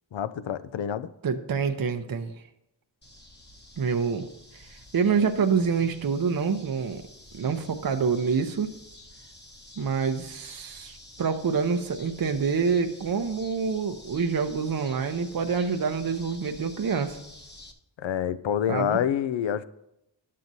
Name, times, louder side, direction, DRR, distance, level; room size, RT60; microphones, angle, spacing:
voice 1, 0.1-1.1 18.0-19.6, left 9 dB, 80° left, 15 dB, 0.5 m, -27 dB
voice 2, 1.2-2.3 3.8-4.2 4.5-7.0 7.3-8.7 9.8-17.2 18.7-19.0, right 5 dB, 50° right, 7 dB, 0.7 m, -27 dB
sound 1, 3.0-17.7, left 1 dB, 25° left, 1.1 m, -49 dB
11.5 x 7.5 x 2.7 m, 0.84 s
cardioid pair, 45°, 45 cm